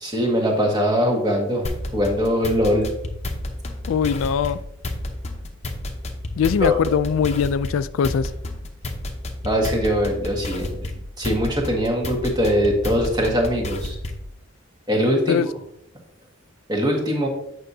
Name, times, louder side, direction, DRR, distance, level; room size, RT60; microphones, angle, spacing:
voice 1, 0.0-1.7 1.9-2.8 6.6-6.8 9.4-10.9 11.2-14.0 14.9-15.4 16.7-17.3, equal, 20° right, 1.5 m, -21 dB
sound 1, 1.6-14.3, left 1 dB, 35° left, 0.8 m, -31 dB
voice 2, 3.9-4.6 6.4-8.3 15.3-15.5, left 7 dB, 80° left, 0.3 m, -21 dB
8.7 x 6.2 x 2.7 m
head